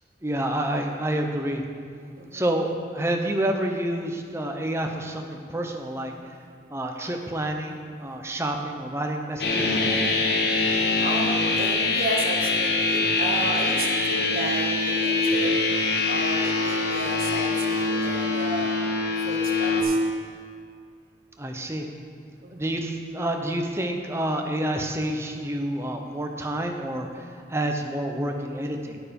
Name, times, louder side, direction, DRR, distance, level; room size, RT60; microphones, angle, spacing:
voice 1, 0.2-1.6 2.3-6.1 6.7-9.8 21.4-21.9 22.5-29.0, right 1 dB, 15° right, 3 dB, 0.8 m, -28 dB
sound 1, 9.4-19.8, left 3 dB, 60° left, 1.2 m, -24 dB
voice 2, 11.0-15.5 16.1-18.8 19.2-20.0 22.4-22.7, right 2 dB, 55° right, 1 dB, 1.2 m, -33 dB
9.1 x 9.1 x 5.3 m, 2.2 s
head